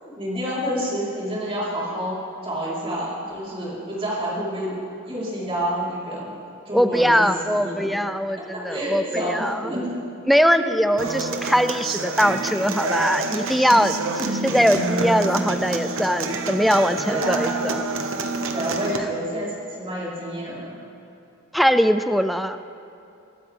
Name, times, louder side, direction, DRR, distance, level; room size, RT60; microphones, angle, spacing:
voice 1, 0.0-2.2 2.4-4.7 5.0-6.3 6.6-7.3 7.5-7.9 8.5-9.9 10.5-10.7 14.6-14.7 17.1-17.6 18.5-20.8, equal, 25° right, -8 dB, 4.6 m, -28 dB
voice 2, 6.7-9.7 10.3-17.9 21.5-22.6, equal, ahead, 10 dB, 0.3 m, -21 dB
Human voice / Acoustic guitar, 11.0-19.0, right 3 dB, 65° right, 1.1 m, -27 dB
23.5 x 13.0 x 3.7 m, 2.7 s
head